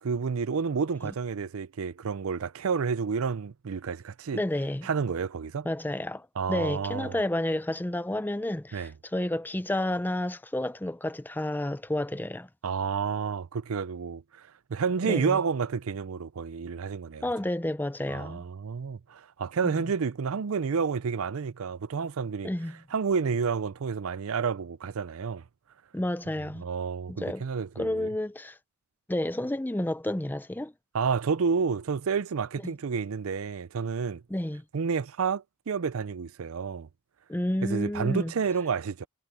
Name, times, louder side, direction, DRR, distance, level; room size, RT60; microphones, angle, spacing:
voice 1, 0.0-4.4 4.8-5.7 6.4-7.2 8.7-8.9 12.6-17.3 18.1-22.5 22.9-25.4 26.6-28.1 30.9-34.2 34.7-36.9 37.6-39.1, right 5 dB, 65° right, 0.5 m, -30 dB
voice 2, 4.3-4.9 5.6-12.5 15.0-15.4 17.2-18.4 19.6-19.8 22.4-22.8 25.9-26.6 27.1-27.4 27.8-28.6 29.1-30.7 34.3-34.6 37.3-38.3, left 1 dB, 10° left, 0.5 m, -30 dB
head